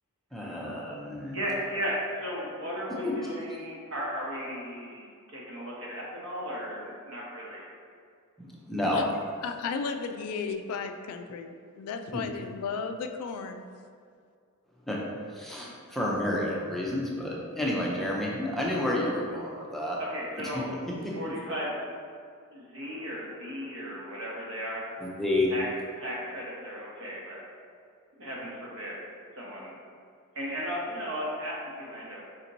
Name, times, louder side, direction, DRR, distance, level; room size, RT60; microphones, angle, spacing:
voice 1, 0.3-1.4 3.0-3.3 8.4-9.0 12.1-12.2 14.9-15.0 15.3-20.0 20.4-20.5 21.0-21.1 25.0-25.5, left 1 dB, ahead, -5 dB, 0.5 m, -30 dB
voice 2, 1.3-7.6 20.0-20.7 21.1-21.7 22.5-24.8 25.5-25.7 26.0-27.4 28.2-29.0 29.4-29.7 30.3-32.2, equal, 65° right, -5 dB, 1.0 m, -35 dB
voice 3, 9.4-13.6, left 5 dB, 75° left, 10 dB, 0.3 m, -34 dB
5.1 x 2.9 x 2.6 m, 2.2 s
head